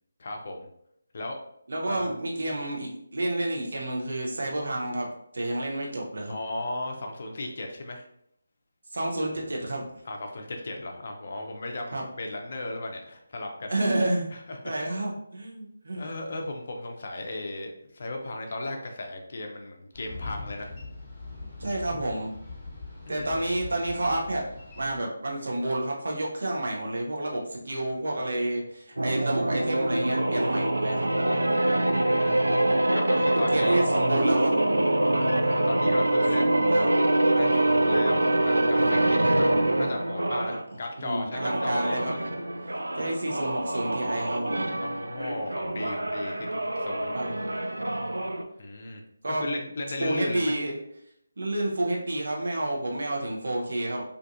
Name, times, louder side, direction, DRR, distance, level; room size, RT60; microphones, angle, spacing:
voice 1, 0.2-0.7 1.1-1.4 1.9-2.1 6.3-8.0 10.1-13.7 14.3-14.7 15.9-20.7 23.1-23.5 31.7-32.6 32.9-33.8 35.1-36.6 37.3-39.5 39.8-42.2 44.8-47.1 48.6-49.0 49.3-50.5, left 2 dB, 45° left, 2 dB, 0.4 m, -36 dB
voice 2, 1.7-6.4 8.9-9.9 11.9-12.0 13.7-14.3 14.6-16.1 21.6-22.3 23.1-24.4 24.8-31.1 33.3-34.5 36.4-37.0 40.4-40.6 41.0-42.1 43.0-44.7 47.1-47.3 49.2-49.4 50.0-50.7 51.4-54.0, right 1 dB, 60° right, -1 dB, 0.7 m, -30 dB
Boat Water vehicle, 19.9-25.0, left 3 dB, 10° left, 0.9 m, -41 dB
sound 1, 29.0-40.6 41.3-48.4, right 1 dB, 80° right, 0.3 m, -25 dB
2.5 x 2.4 x 2.5 m, 0.73 s
figure-of-eight pair, 155°, 0 cm